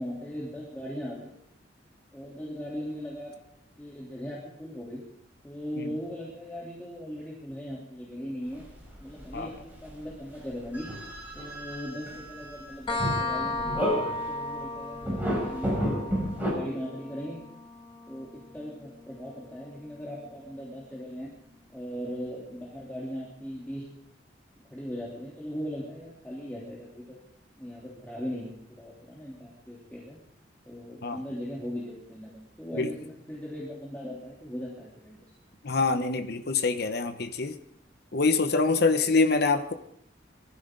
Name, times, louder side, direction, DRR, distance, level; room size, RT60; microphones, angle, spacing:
voice 1, 0.0-1.3 2.1-3.3 3.8-5.0 5.4-8.7 9.0-10.9 11.3-16.1 16.5-17.4 18.1-21.3 21.7-23.8 24.7-27.2 27.6-30.2 30.6-35.2, equal, 10° left, -5 dB, 3.3 m, -39 dB
sound 1, 8.5-10.0 10.3-14.5 14.9-16.5, equal, 10° right, 6.5 m, -32 dB
sound 2, 12.9-20.3, left 2 dB, 25° left, 1.7 m, -36 dB
voice 2, 35.6-37.6 38.1-39.7, left 3 dB, 60° left, 7 dB, 0.9 m, -25 dB
23.0 x 14.5 x 3.9 m, 0.71 s
head